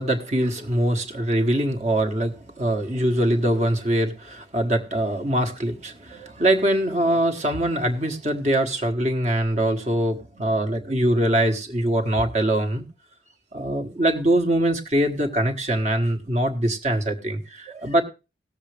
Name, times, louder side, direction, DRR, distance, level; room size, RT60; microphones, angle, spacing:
voice 1, 0.0-12.8 13.5-18.0, right 1 dB, 40° right, 5 dB, 1.3 m, -23 dB
18.0 x 7.2 x 3.3 m, 0.29 s
head